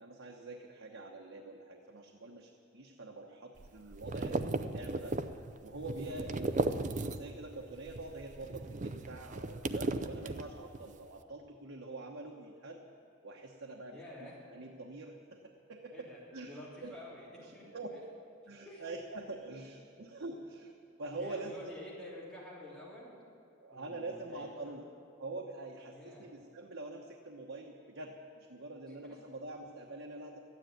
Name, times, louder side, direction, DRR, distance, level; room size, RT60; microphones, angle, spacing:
voice 1, 0.0-5.2 5.6-6.6 7.0-12.8 13.2-16.1 16.3-17.0 17.4-18.2 18.5-21.7 23.6-24.8 25.2-30.4, right 2 dB, 85° right, 0 dB, 1.1 m, -45 dB
sound 1, 3.6-7.5 7.8-10.9, right 2 dB, 40° right, 0.5 m, -36 dB
voice 2, 13.9-14.3 15.9-17.8 18.6-18.8 21.1-23.2 23.7-24.8 25.9-26.3 28.9-29.0, left 1 dB, 5° left, -8 dB, 3.1 m, -49 dB
13.0 x 9.7 x 9.2 m, 2.7 s
head